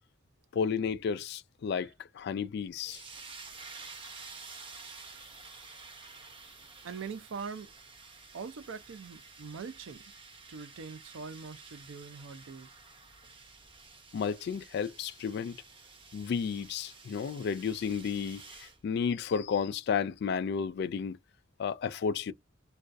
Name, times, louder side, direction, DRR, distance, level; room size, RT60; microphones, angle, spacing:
voice 1, 0.5-1.9 2.2-3.0 14.1-15.6 16.1-21.2 21.6-22.3, left 6 dB, 55° left, 0.3 m, -32 dB
sound 1, 2.8-18.8, right 4 dB, 30° right, 0.6 m, -51 dB
voice 2, 6.8-7.7 8.3-10.0 10.5-12.7, right 5 dB, 80° right, 0.4 m, -42 dB
2.3 x 2.2 x 2.5 m
head